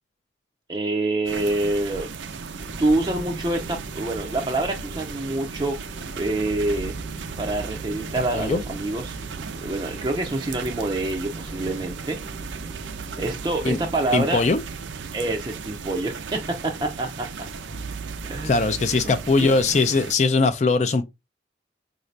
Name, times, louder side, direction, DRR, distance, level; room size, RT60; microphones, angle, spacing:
voice 1, 0.7-2.1 2.8-5.8 6.2-6.9 7.4-9.2 9.6-12.2 13.2-14.4 15.1-17.3 18.2-18.6 18.9-19.5, right 2 dB, 20° right, 0.4 m, -26 dB
sound 1, 1.3-20.1, right 5 dB, 85° right, 0.5 m, -37 dB
sound 2, 2.6-13.9, right 1 dB, 15° left, 0.7 m, -41 dB
sound 3, 5.7-19.2, right 4 dB, 80° left, 0.9 m, -43 dB
voice 2, 14.1-14.6 18.4-21.0, left 3 dB, 40° left, 0.3 m, -20 dB
4.9 x 2.6 x 3.2 m
head